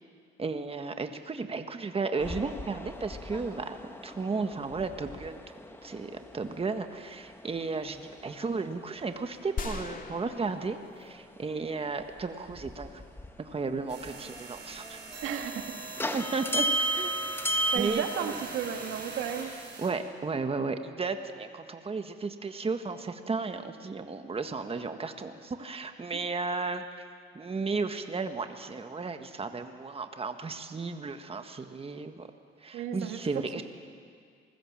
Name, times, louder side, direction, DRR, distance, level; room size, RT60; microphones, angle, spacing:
voice 1, 0.4-5.4 5.8-13.0 13.4-15.0 16.1-17.1 17.6-18.3 19.8-26.8 27.3-32.3 32.6-33.6, right 4 dB, 30° right, 7 dB, 1.5 m, -34 dB
sound 1, 2.2-13.5 13.8-17.8, right 1 dB, 10° left, 1.7 m, -36 dB
sound 2, 9.6-11.8, left 4 dB, 45° left, 2.3 m, -40 dB
sound 3, 13.9-19.9, right 4 dB, 60° right, 6.2 m, -42 dB
voice 2, 15.2-15.7 17.7-19.5 32.7-33.2, right 8 dB, 90° right, 5 dB, 2.0 m, -33 dB
27.0 x 20.5 x 7.5 m, 2.1 s
cardioid pair, 90°, 20 cm